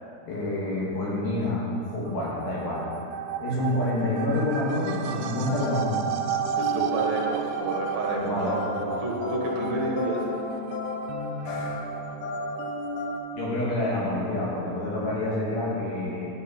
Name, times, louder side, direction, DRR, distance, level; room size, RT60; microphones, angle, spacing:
voice 1, 0.3-2.9 3.4-6.0 8.2-9.0 11.4-11.7 13.3-16.3, left 1 dB, 70° left, -6 dB, 3.6 m, -28 dB
sound 1, 1.9-13.2, right 10 dB, 90° right, 2.6 m, -34 dB
sound 2, 5.1-13.2, left 2 dB, 85° left, 3.0 m, -33 dB
voice 2, 6.6-10.2, right 2 dB, 55° right, -3 dB, 2.3 m, -30 dB
12.5 x 8.9 x 4.3 m, 2.7 s
omnidirectional pair, 4.4 m